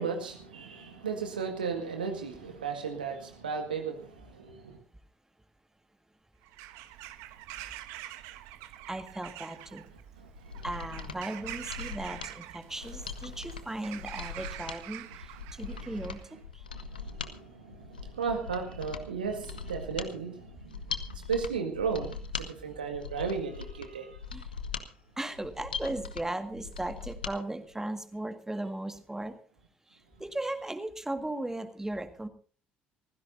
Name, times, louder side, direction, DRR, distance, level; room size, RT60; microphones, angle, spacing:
voice 1, 0.0-4.8 10.2-10.6 15.6-15.9 16.7-20.8 21.1-24.2, right 5 dB, 85° right, 1.9 m, -35 dB
Bird vocalization bird call bird song / Crow, 6.4-16.3, right 14 dB, 65° right, 1.1 m, -45 dB
voice 2, 8.9-9.9 10.6-16.7 24.3-24.5 25.2-29.4 29.9-32.3, right 1 dB, 10° right, 1.9 m, -37 dB
Mechanisms, 10.3-27.4 27.7-27.8, left 5 dB, 85° left, 0.9 m, -41 dB
24.5 x 15.5 x 2.7 m
figure-of-eight pair, 50°, 5 cm